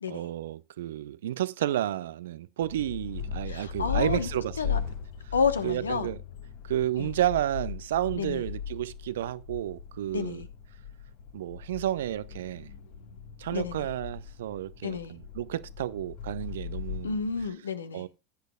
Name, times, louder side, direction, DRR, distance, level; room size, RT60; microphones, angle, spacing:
voice 1, 0.1-4.8 5.6-6.2 6.7-10.4 11.3-12.7 13.4-17.2 17.9-18.1, right 12 dB, 70° right, 0.5 m, -31 dB
sound 1, 2.6-17.5, left 7 dB, 60° left, 1.5 m, -38 dB
voice 2, 3.5-4.3 4.6-4.8 5.3-6.1 7.0-7.1 8.2-8.4 10.1-10.5 13.5-13.8 14.8-15.1 17.0-18.0, left 5 dB, 80° left, 1.1 m, -30 dB
17.0 x 8.1 x 2.3 m
figure-of-eight pair, 80°, 0 cm